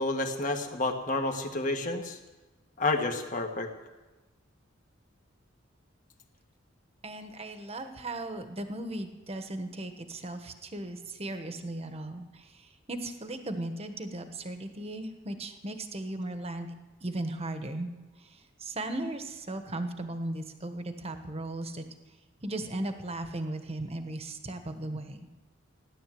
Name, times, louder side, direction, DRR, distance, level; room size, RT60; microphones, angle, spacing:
voice 1, 0.0-2.2 2.8-3.7, left 2 dB, 40° left, 4 dB, 1.6 m, -30 dB
voice 2, 7.0-16.7 17.0-17.9 18.2-21.8 22.4-25.2, right 1 dB, 30° right, 7 dB, 1.2 m, -37 dB
16.5 x 11.0 x 7.6 m, 1.1 s
head